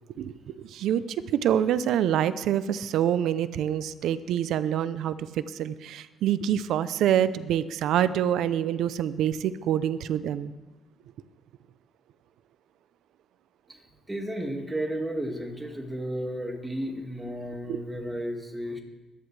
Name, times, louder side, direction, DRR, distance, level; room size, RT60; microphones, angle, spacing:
voice 1, 0.2-10.5 17.7-17.8, right 10 dB, 80° right, 15 dB, 0.6 m, -26 dB
voice 2, 14.1-18.8, right 1 dB, 10° right, 2 dB, 2.0 m, -33 dB
22.5 x 10.0 x 3.3 m, 1.1 s
cardioid pair, 90°, 0 cm